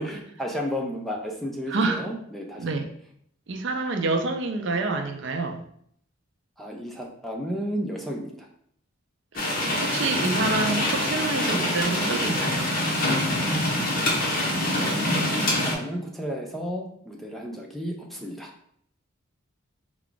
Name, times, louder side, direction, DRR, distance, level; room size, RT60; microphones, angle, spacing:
voice 1, 0.0-2.6 6.6-8.5 15.5-18.5, equal, ahead, 0 dB, 0.4 m, -32 dB
voice 2, 1.7-2.1 2.6-2.9 3.5-5.6 9.8-12.7, right 3 dB, 60° right, 5 dB, 0.5 m, -27 dB
sound 1, 9.4-15.7, left 1 dB, 45° left, 1.0 m, -25 dB
4.5 x 2.4 x 3.7 m, 0.67 s
head